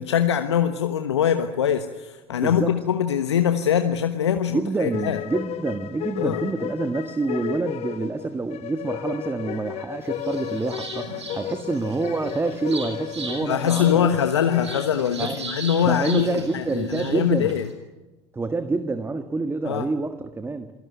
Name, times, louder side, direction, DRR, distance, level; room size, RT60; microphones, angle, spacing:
voice 1, 0.0-5.2 6.2-6.5 13.4-17.7 19.6-19.9, left 9 dB, 80° left, 8 dB, 1.2 m, -23 dB
voice 2, 2.4-2.8 4.5-14.2 15.2-15.4 15.8-17.6 18.3-20.7, right 3 dB, 15° right, 9 dB, 1.5 m, -27 dB
sound 1, 4.9-14.9, left 13 dB, 45° left, 1.0 m, -33 dB
sound 2, 10.0-17.7, right 3 dB, 85° right, 4.3 m, -38 dB
28.0 x 18.5 x 9.2 m, 1.1 s
figure-of-eight pair, 70°, 14 cm